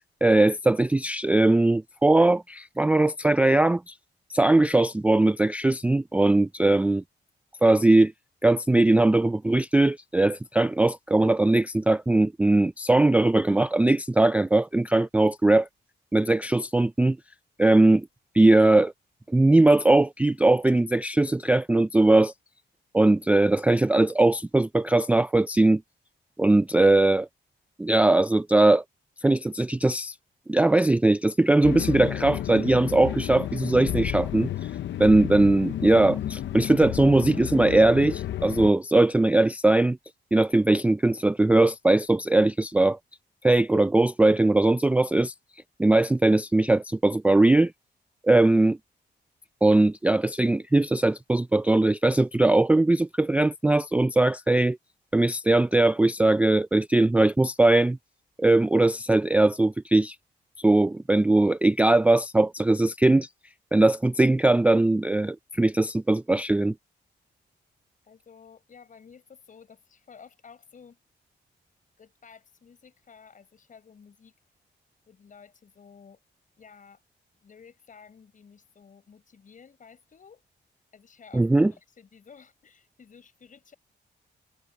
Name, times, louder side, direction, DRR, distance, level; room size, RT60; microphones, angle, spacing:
voice 1, 0.2-3.9 4.3-7.0 7.6-8.1 8.4-15.7 16.1-17.2 17.6-18.1 18.3-18.9 19.3-22.3 22.9-25.8 26.4-27.3 27.8-28.8 29.2-30.1 30.5-34.5 35.0-40.0 40.3-43.0 43.4-45.3 45.8-47.7 48.2-48.8 49.6-54.8 55.1-58.0 58.4-60.2 60.6-63.3 63.7-66.7 81.3-81.7, right 2 dB, 5° right, 0.3 m, -20 dB
sound 1, 31.6-38.7, left 11 dB, 80° left, 0.7 m, -32 dB
voice 2, 68.0-71.0 72.0-74.3 75.1-76.2 76.6-77.0 77.4-80.4 80.9-83.7, left 6 dB, 45° left, 7.5 m, -52 dB
wide cardioid pair, 140°, 19 cm